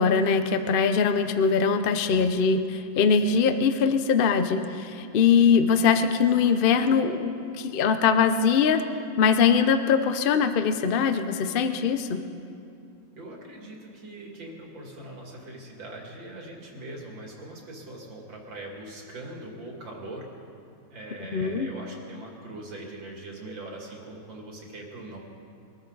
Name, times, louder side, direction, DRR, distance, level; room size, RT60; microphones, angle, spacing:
voice 1, 0.0-8.8 9.2-12.2 21.3-21.7, left 6 dB, 85° left, 9 dB, 0.4 m, -22 dB
voice 2, 13.2-20.3 20.9-25.2, right 1 dB, 85° right, -1 dB, 3.1 m, -41 dB
23.0 x 13.5 x 4.0 m, 2.5 s
omnidirectional pair, 2.0 m